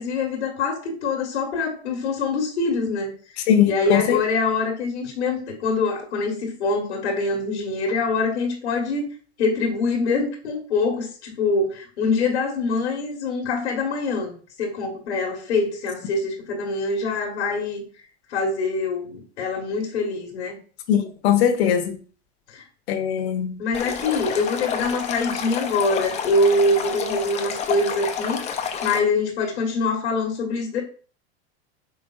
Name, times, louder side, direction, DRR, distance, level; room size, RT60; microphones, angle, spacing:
voice 1, 0.0-3.2 3.7-9.1 9.4-17.8 18.3-20.6 22.5-22.6 23.6-28.4 28.8-30.8, left 3 dB, 90° left, 1.3 m, -24 dB
voice 2, 3.5-4.2 20.9-21.9 22.9-23.6, left 9 dB, 70° left, 1.0 m, -20 dB
Stream, 23.7-29.0, left 7 dB, 20° left, 0.5 m, -29 dB
5.1 x 3.4 x 2.3 m
hypercardioid pair, 115°, 33 cm